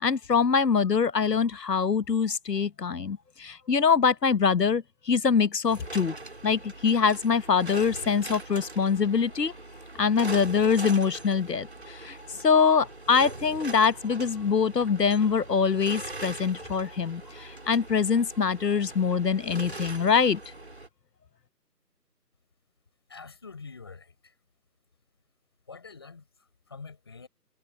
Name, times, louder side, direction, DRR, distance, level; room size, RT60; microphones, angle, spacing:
voice 1, 0.0-6.1 6.4-9.5 10.0-11.7 12.0-12.2 12.4-20.4, left 6 dB, 75° left, 1.0 m, -24 dB
sound 1, 5.7-20.9, right 2 dB, 40° right, 3.7 m, -42 dB
voice 2, 23.1-24.4 25.7-27.3, left 4 dB, 15° left, 6.2 m, -46 dB
figure-of-eight pair, 180°, 49 cm